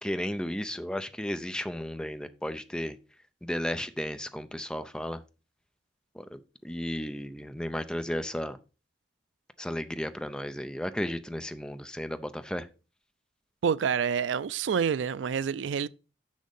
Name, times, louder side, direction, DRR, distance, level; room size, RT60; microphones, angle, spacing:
voice 1, 0.0-3.0 3.4-5.2 6.1-6.4 6.6-8.6 9.6-12.7, equal, 5° left, 0.6 m, -34 dB
voice 2, 13.6-15.9, right 7 dB, 80° right, 0.4 m, -27 dB
6.5 x 6.4 x 5.3 m
head